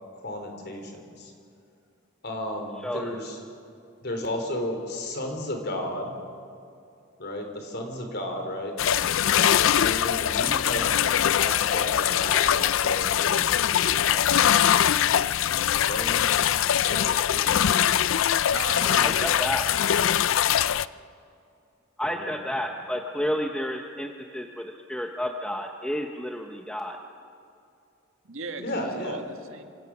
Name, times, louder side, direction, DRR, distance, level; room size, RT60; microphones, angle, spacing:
voice 1, 0.1-1.3 2.2-3.4 4.0-6.1 7.2-8.7 9.3-14.6 15.7-17.8 18.4-19.1 22.0-22.7 28.6-29.2, left 1 dB, 50° left, 4 dB, 3.4 m, -34 dB
voice 2, 2.8-3.1 19.0-19.6 22.0-27.0, equal, 5° left, 3 dB, 0.8 m, -31 dB
sound 1, 8.8-20.8, left 10 dB, 70° left, 0.4 m, -22 dB
voice 3, 18.5-19.6 28.2-29.6, right 3 dB, 70° right, 6 dB, 1.7 m, -37 dB
27.5 x 16.5 x 6.0 m, 2.6 s
head